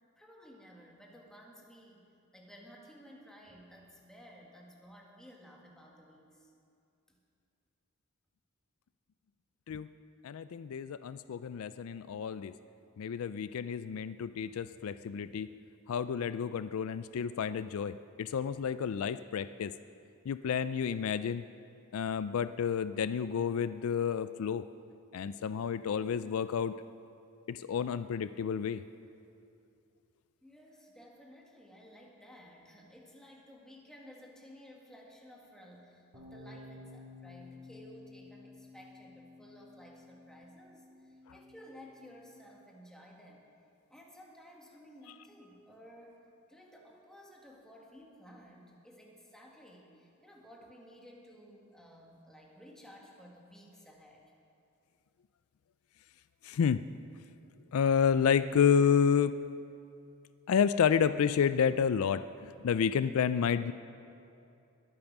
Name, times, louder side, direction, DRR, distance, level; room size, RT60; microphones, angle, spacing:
voice 1, 0.2-2.0 2.3-6.5 7.1-7.2 30.4-43.4 43.9-46.2 46.5-54.3, equal, 5° left, -1 dB, 1.9 m, -55 dB
voice 2, 10.2-12.5 13.0-15.5 15.9-19.7 20.3-21.4 21.9-24.6 25.1-26.8 27.5-28.8 56.4-56.8 57.7-59.4 60.5-63.7, left 7 dB, 70° left, 13 dB, 0.4 m, -30 dB
sound 1, 36.1-42.4, left 2 dB, 45° right, 3.6 m, -53 dB
21.5 x 8.8 x 6.0 m, 2.6 s
head